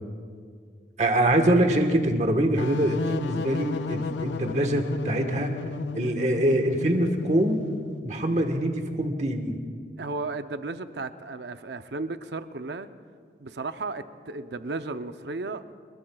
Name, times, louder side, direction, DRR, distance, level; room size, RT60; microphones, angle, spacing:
voice 1, 1.0-5.5 5.9-7.6 8.0-9.6, right 1 dB, 40° right, 1.4 m, -24 dB
sound 1, 2.6-8.1, left 4 dB, 85° left, 0.5 m, -34 dB
voice 2, 10.0-12.9 13.4-15.7, right 3 dB, 70° right, 0.7 m, -34 dB
25.5 x 20.5 x 2.4 m
head